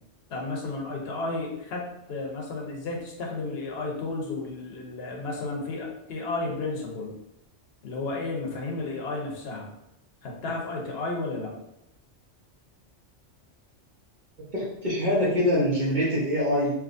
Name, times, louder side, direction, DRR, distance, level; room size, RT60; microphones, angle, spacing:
voice 1, 0.3-7.1 7.8-9.7 10.2-11.5, left 3 dB, 60° left, -1 dB, 1.0 m, -32 dB
voice 2, 14.5-16.7, left 1 dB, 45° right, -5 dB, 0.9 m, -24 dB
3.5 x 2.9 x 2.5 m, 0.86 s
omnidirectional pair, 1.2 m